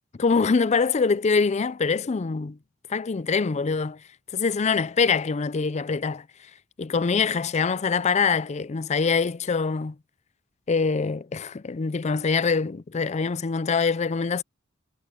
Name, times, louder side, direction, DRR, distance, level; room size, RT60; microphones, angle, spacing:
voice 1, 0.2-2.6 2.9-4.0 4.3-6.3 6.8-10.0 10.7-14.4, left 5 dB, 35° left, 0.4 m, -24 dB
head